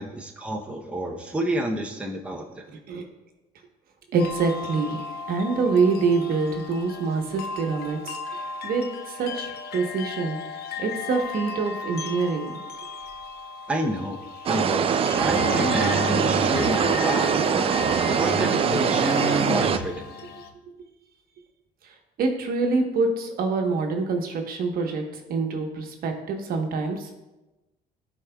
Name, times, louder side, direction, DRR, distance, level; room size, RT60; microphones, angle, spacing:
voice 1, 0.0-2.6 13.7-14.2 14.5-20.0, right 1 dB, 5° right, 0 dB, 0.7 m, -30 dB
voice 2, 2.7-3.0 4.1-5.0 5.3-10.4 10.8-12.6 20.7-20.8 22.2-25.0 25.3-27.1, right 4 dB, 60° right, 4 dB, 1.1 m, -26 dB
sound 1, 4.2-20.5, left 5 dB, 70° left, 0.7 m, -36 dB
sound 2, 14.5-19.8, right 7 dB, 35° right, 0.4 m, -23 dB
sound 3, 15.0-17.4 17.7-20.3, left 1 dB, 25° left, 2.3 m, -32 dB
12.0 x 4.7 x 2.3 m, 1.0 s
cardioid pair, 110°, 17 cm